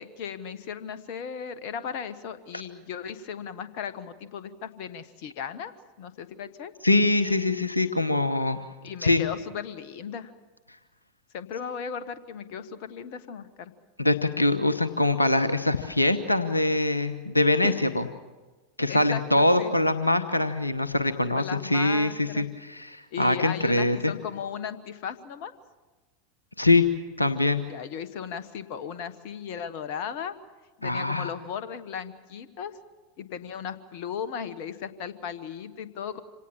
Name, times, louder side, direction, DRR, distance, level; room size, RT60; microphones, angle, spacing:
voice 1, 0.0-6.7 8.8-10.3 11.3-13.7 17.6-17.7 18.9-19.7 21.3-22.5 23.1-25.5 27.7-30.3 30.8-32.8 33.2-36.2, left 7 dB, 55° left, 13 dB, 1.2 m, -36 dB
voice 2, 6.8-8.6 9.0-9.2 14.0-18.1 18.8-24.1 26.6-26.9 27.2-27.6 30.8-31.3, left 2 dB, 90° left, 12 dB, 0.9 m, -23 dB
26.0 x 18.0 x 7.2 m, 1.2 s
figure-of-eight pair, 85°, 0 cm